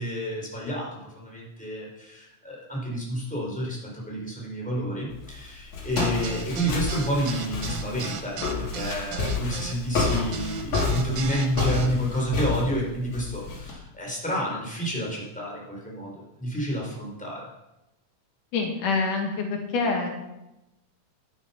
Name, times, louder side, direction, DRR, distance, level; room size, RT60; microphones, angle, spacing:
voice 1, 0.0-17.5, equal, ahead, -3 dB, 4.2 m, -30 dB
Walk footsteps, 5.1-13.7, left 4 dB, 65° left, 3.9 m, -29 dB
sound 1, 6.0-11.9, right 8 dB, 65° right, 1.5 m, -36 dB
voice 2, 18.5-20.1, left 4 dB, 85° left, 2 dB, 3.5 m, -26 dB
11.5 x 11.0 x 5.8 m, 0.93 s
omnidirectional pair, 3.5 m